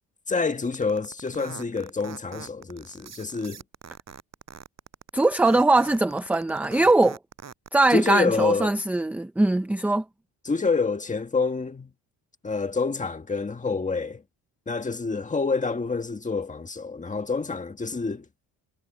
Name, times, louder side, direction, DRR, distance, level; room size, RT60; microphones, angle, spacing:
voice 1, 0.3-3.6 7.9-8.7 10.4-11.9 12.4-14.2 14.7-18.2, left 4 dB, 15° left, 1.7 m, -27 dB
sound 1, 0.7-7.8, right 7 dB, 35° right, 7.6 m, -42 dB
voice 2, 5.1-7.2 7.7-10.0, right 2 dB, 5° right, 0.5 m, -21 dB
cardioid pair, 145°, 45 cm